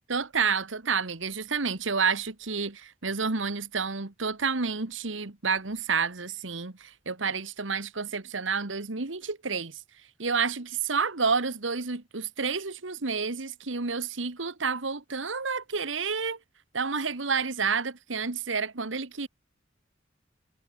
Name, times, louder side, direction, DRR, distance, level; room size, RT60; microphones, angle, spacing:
voice 1, 0.1-9.8 10.2-16.4 16.7-19.3, right 5 dB, 85° right, 1.6 m, -29 dB
head